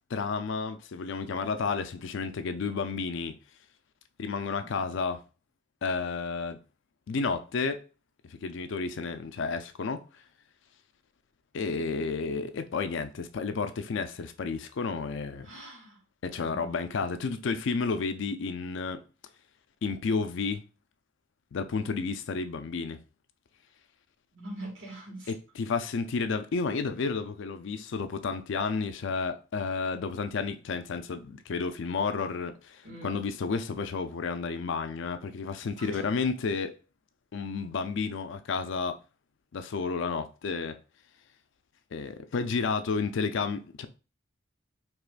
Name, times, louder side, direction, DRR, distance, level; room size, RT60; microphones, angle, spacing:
voice 1, 0.1-3.3 4.2-5.2 5.8-6.6 7.1-7.8 8.3-10.0 11.5-15.5 16.2-19.0 19.8-20.6 21.5-23.0 25.3-36.7 37.3-39.0 39.5-40.8 41.9-43.9, left 4 dB, 65° left, 0.4 m, -31 dB
voice 2, 4.6-4.9 15.4-16.0 16.4-17.0 24.3-25.3 32.8-33.2 35.8-36.0, right 1 dB, 75° right, 1.6 m, -44 dB
4.7 x 3.0 x 2.4 m
head